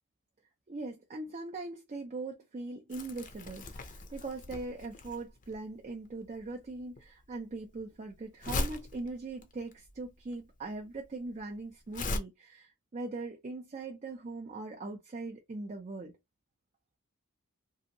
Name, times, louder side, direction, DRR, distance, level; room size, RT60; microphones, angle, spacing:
voice 1, 0.7-16.2, right 3 dB, 35° right, 0.4 m, -41 dB
Crumpling crinkling, 2.9-12.2, left 2 dB, 40° left, 0.5 m, -39 dB
2.7 x 2.5 x 2.7 m
head